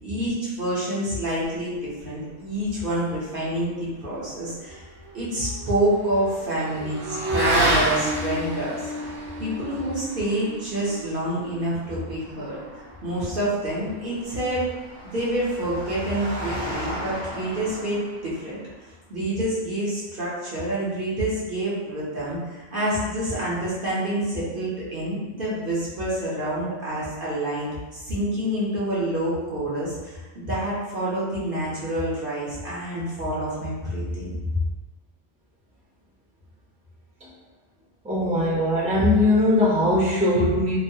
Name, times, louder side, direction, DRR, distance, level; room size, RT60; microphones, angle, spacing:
voice 1, 0.0-4.9 5.1-9.1 9.4-12.6 13.0-14.6 15.0-18.6 19.1-34.3, right 1 dB, 55° right, -8 dB, 0.8 m, -27 dB
Motorcycle / Accelerating revving vroom, 4.5-13.3, right 1 dB, 90° right, 1.0 m, -30 dB
Engine, 13.0-18.6, equal, 35° left, 0.6 m, -37 dB
voice 2, 38.0-40.7, left 1 dB, 10° right, -8 dB, 0.5 m, -20 dB
3.0 x 2.0 x 2.6 m, 1.2 s
omnidirectional pair, 1.2 m